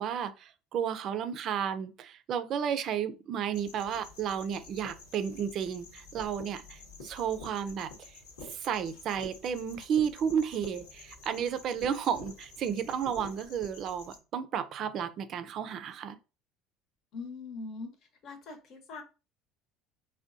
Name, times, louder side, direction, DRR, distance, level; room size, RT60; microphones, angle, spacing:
voice 1, 0.0-8.1 8.5-16.2, right 8 dB, 55° right, 0.4 m, -32 dB
sound 1, 3.5-14.2, left 3 dB, 90° left, 1.0 m, -49 dB
voice 2, 17.1-17.9 18.2-19.0, left 4 dB, 60° left, 0.9 m, -41 dB
3.5 x 2.2 x 2.5 m
hypercardioid pair, 80°, 0 cm